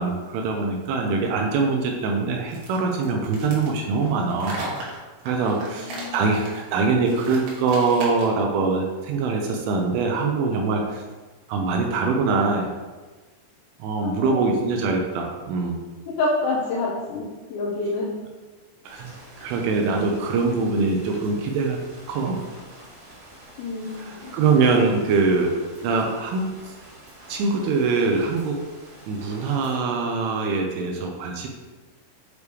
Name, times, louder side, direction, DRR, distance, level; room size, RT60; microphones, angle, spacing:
voice 1, 0.0-4.6 5.3-11.0 11.5-12.7 13.8-15.8 18.9-19.1 19.4-21.8 22.1-22.4 24.0-25.6 25.8-26.5 27.3-28.6 29.1-31.5, right 4 dB, 80° right, 1 dB, 3.1 m, -23 dB
sound 1, 2.5-8.4, right 2 dB, 65° right, 3.0 m, -37 dB
voice 2, 5.5-6.2 14.0-14.4 16.2-18.2 23.6-24.4, left 2 dB, 85° left, -3 dB, 2.6 m, -28 dB
sound 2, 18.8-29.8, right 1 dB, 50° right, 2.3 m, -46 dB
8.2 x 5.1 x 3.2 m, 1.3 s
omnidirectional pair, 5.8 m